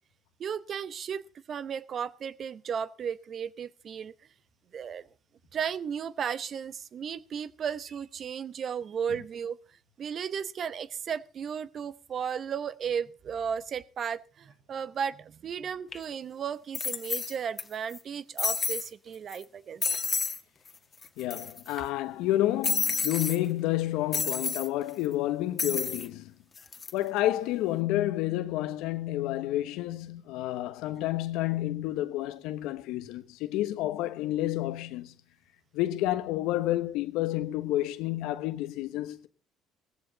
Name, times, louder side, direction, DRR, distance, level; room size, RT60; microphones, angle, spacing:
voice 1, 0.4-4.1 4.7-5.1 5.5-9.6 10.0-19.8, right 7 dB, 55° right, 0.8 m, -35 dB
sound 1, 15.9-16.0 16.7-17.6 17.9-18.0 18.4-18.9 19.3-19.4 19.8-20.4 20.7-20.8 21.0-21.7 22.6-23.4 24.1-24.7 25.6-26.1 26.6-26.9, left 5 dB, 35° left, 1.6 m, -30 dB
voice 2, 21.2-26.3 26.9-35.1 35.7-39.3, left 15 dB, 80° left, 1.0 m, -30 dB
16.5 x 15.0 x 4.0 m
supercardioid pair, 70°, 0 cm